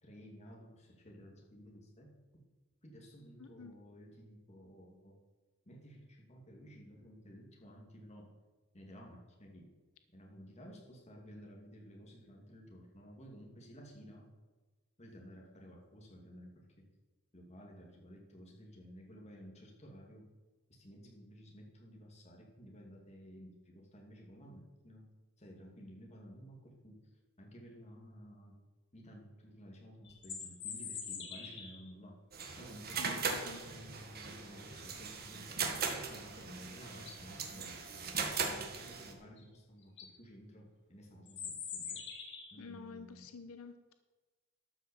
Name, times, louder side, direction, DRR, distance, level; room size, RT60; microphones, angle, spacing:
voice 1, 0.0-2.4 2.8-5.2 5.7-8.3 8.7-9.7 10.1-14.3 15.0-16.9 17.3-20.3 20.7-25.1 25.4-27.1 27.4-28.6 28.9-32.2 32.6-33.3 33.6-35.8 36.1-42.0 42.5-43.3, equal, 30° left, -1 dB, 2.5 m, -54 dB
voice 2, 3.4-3.7 32.9-33.6 42.6-44.0, left 5 dB, 85° left, 9 dB, 0.7 m, -50 dB
sound 1, 30.0-31.9 36.4-36.5 36.9-37.3 39.4-39.5 39.8-40.1 41.3-42.6, left 6 dB, 55° left, 2.1 m, -44 dB
sound 2, 32.3-39.1, right 5 dB, 45° right, 1.5 m, -39 dB
12.5 x 5.8 x 7.0 m, 1.3 s
head